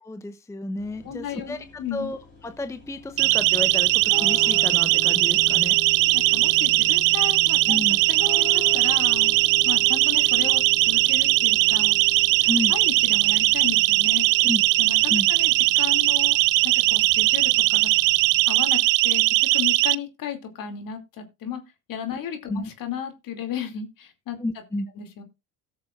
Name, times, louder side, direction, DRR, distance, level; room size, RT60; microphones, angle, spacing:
voice 1, 0.0-1.6 1.9-2.2 2.4-5.8 7.7-8.0 12.4-12.7 14.4-14.6 15.1-15.3 22.5-22.6 24.4-24.9, left 2 dB, 5° left, 0.7 m, -31 dB
sound 1, 0.8-13.8, left 1 dB, 25° left, 3.5 m, -50 dB
voice 2, 1.0-2.1 6.1-9.3 9.6-12.0 12.7-14.3 14.8-16.4 16.6-17.9 18.5-21.6 21.9-24.4 24.9-25.2, left 8 dB, 50° left, 2.6 m, -34 dB
sound 2, 3.1-18.5, left 3 dB, 75° left, 3.6 m, -41 dB
Siren, 3.2-19.9, right 19 dB, 50° right, 0.5 m, -20 dB
17.5 x 6.6 x 2.4 m
hypercardioid pair, 80°, 42 cm